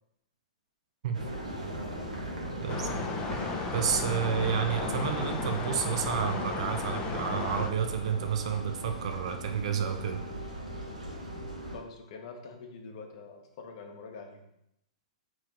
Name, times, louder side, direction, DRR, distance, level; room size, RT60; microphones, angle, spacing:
sound 1, 1.1-11.8, right 1 dB, 85° right, 1.1 m, -39 dB
voice 1, 2.6-3.0 3.7-10.2, right 7 dB, 55° right, 5 dB, 0.5 m, -30 dB
sound 2, 2.7-7.7, left 4 dB, 25° left, 0.5 m, -35 dB
voice 2, 11.7-14.5, left 4 dB, 50° left, 3 dB, 0.9 m, -45 dB
4.2 x 3.1 x 3.7 m, 0.79 s
figure-of-eight pair, 110°, 4 cm